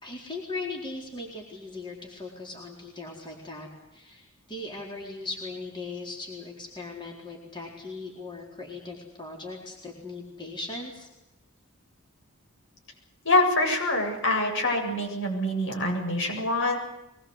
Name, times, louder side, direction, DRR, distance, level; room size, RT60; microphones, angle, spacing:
voice 1, 0.0-11.1, left 3 dB, 20° left, -1 dB, 4.3 m, -39 dB
voice 2, 13.2-16.8, left 2 dB, 60° left, 2 dB, 7.8 m, -25 dB
23.0 x 21.5 x 8.2 m, 0.94 s
head